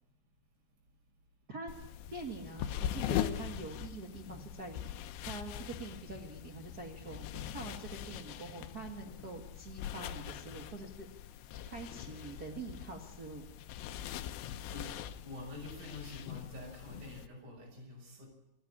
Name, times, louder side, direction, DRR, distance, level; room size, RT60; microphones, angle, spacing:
sound 1, 1.7-17.3, left 11 dB, 85° left, 3.1 m, -42 dB
voice 1, 2.1-4.9 5.3-11.1 11.6-13.4, right 3 dB, 85° right, 0 dB, 0.8 m, -45 dB
voice 2, 14.7-18.3, left 2 dB, 45° right, -2 dB, 7.1 m, -47 dB
27.0 x 10.5 x 9.9 m, 0.94 s
omnidirectional pair, 4.9 m